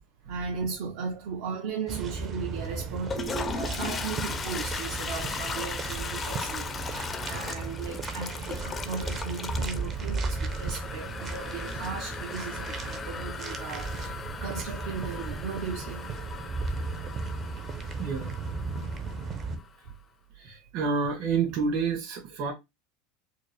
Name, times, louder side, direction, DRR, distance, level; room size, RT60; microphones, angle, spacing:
voice 1, 0.3-16.1 19.1-19.2 20.4-20.7, right 5 dB, 70° right, 0.9 m, -37 dB
sound 1, 1.9-19.6, right 4 dB, 30° right, 0.6 m, -35 dB
Toilet flush, 2.9-19.7, left 5 dB, 20° left, 0.4 m, -38 dB
voice 2, 18.0-18.3 20.4-22.5, right 5 dB, 55° right, 2.2 m, -29 dB
4.6 x 2.0 x 3.2 m
supercardioid pair, 145°, 0 cm